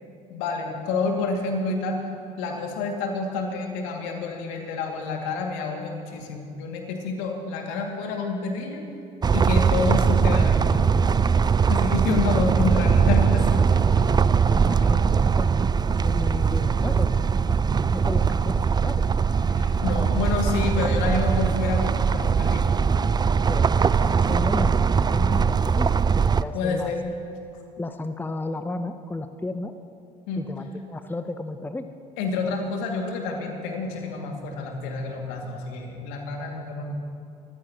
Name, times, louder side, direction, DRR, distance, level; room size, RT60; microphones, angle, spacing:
voice 1, 0.3-2.0 2.4-8.9 9.3-10.9 11.7-14.2 19.5-22.8 26.5-27.0 30.3-30.5 32.2-36.9, left 3 dB, 70° left, 1 dB, 2.4 m, -28 dB
sound 1, 9.2-26.4, right 6 dB, 20° right, 0.4 m, -21 dB
voice 2, 14.5-19.0 23.5-26.9 27.8-29.7 30.4-31.9, left 2 dB, 10° left, 9 dB, 0.8 m, -34 dB
24.0 x 14.5 x 3.0 m, 2.5 s
hypercardioid pair, 60°, 21 cm